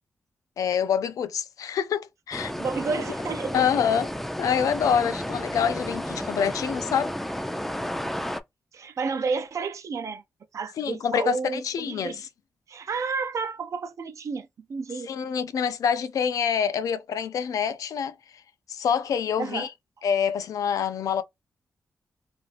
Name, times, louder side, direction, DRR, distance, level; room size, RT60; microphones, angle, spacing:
voice 1, 0.6-2.5 3.5-4.1 4.4-7.1 10.8-12.2 15.1-18.1 18.7-19.7 20.0-21.2, left 7 dB, 85° left, 0.4 m, -26 dB
sound 1, 2.3-8.4, equal, 5° left, 0.3 m, -32 dB
voice 2, 2.6-3.6 8.7-10.2 10.5-12.2 12.7-15.1 19.4-19.7, right 4 dB, 65° right, 0.4 m, -31 dB
2.5 x 2.4 x 3.2 m
cardioid pair, 80°, 6 cm